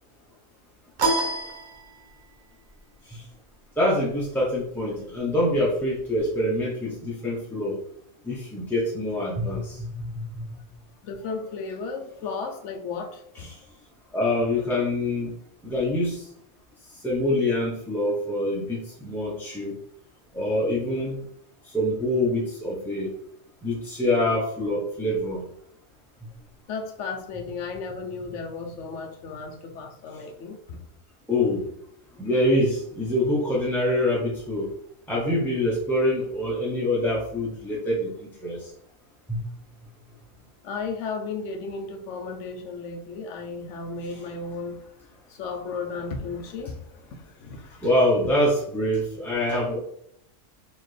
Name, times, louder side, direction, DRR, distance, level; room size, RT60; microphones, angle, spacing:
sound 1, 1.0-2.4, right 2 dB, 45° right, 0.7 m, -27 dB
voice 1, 3.8-7.8 8.2-10.4 13.4-13.5 14.1-15.3 15.6-16.3 17.0-19.8 20.3-21.2 21.6-23.1 23.6-25.4 31.3-31.6 32.2-34.7 35.1-38.7 39.3-39.4 47.8-49.8, left 1 dB, ahead, 0.5 m, -25 dB
voice 2, 11.0-13.5 26.7-30.8 40.6-44.8 45.3-47.9, left 4 dB, 70° left, 0.9 m, -34 dB
4.3 x 2.8 x 3.2 m
omnidirectional pair, 1.3 m